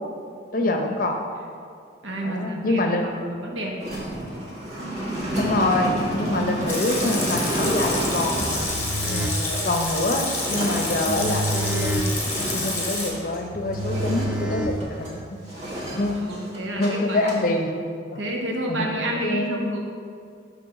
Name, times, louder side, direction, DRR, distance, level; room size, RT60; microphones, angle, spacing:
voice 1, 0.5-1.2 2.2-3.2 5.4-8.7 9.1-12.1 12.5-15.1 16.0-16.2 16.8-17.7 18.7-18.9 19.2-19.6, left 2 dB, 45° left, 3 dB, 0.6 m, -25 dB
voice 2, 2.0-3.8 16.1-17.3 18.2-19.8, right 1 dB, 75° right, 0 dB, 1.0 m, -30 dB
sound 1, 3.8-13.5 13.7-15.1 15.5-16.9 17.1-17.4, right 1 dB, 35° right, 1.5 m, -30 dB
Water tap faucet / Sink (filling or washing) / Liquid, 6.7-13.1, left 2 dB, 15° left, 1.0 m, -29 dB
sound 2, 8.3-15.3, right 1 dB, 5° right, 0.4 m, -30 dB
6.3 x 3.4 x 5.9 m, 2.2 s
head